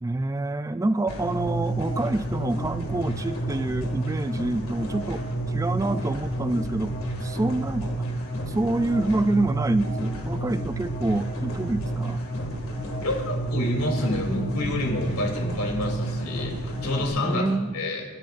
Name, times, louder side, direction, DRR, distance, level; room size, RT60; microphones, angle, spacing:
voice 1, 0.0-7.9 8.5-12.2 17.2-17.7, right 2 dB, 15° right, 12 dB, 0.3 m, -27 dB
sound 1, 1.1-17.1, right 1 dB, 65° left, 2.2 m, -30 dB
voice 2, 13.0-18.2, left 1 dB, 90° left, 0 dB, 3.2 m, -28 dB
28.0 x 11.5 x 2.6 m, 1.4 s
head